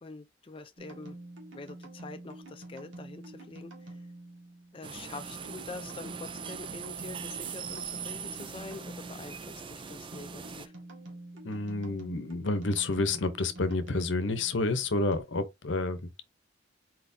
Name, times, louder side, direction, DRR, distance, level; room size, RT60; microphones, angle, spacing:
voice 1, 0.0-1.2 1.5-4.0 4.7-10.7, left 3 dB, 30° left, 0.5 m, -45 dB
sound 1, 0.8-15.2, right 2 dB, 90° right, 1.9 m, -47 dB
sound 2, 4.8-10.7, right 7 dB, 25° right, 0.4 m, -41 dB
voice 2, 11.4-16.2, left 2 dB, 75° left, 0.9 m, -29 dB
4.4 x 4.3 x 2.7 m
head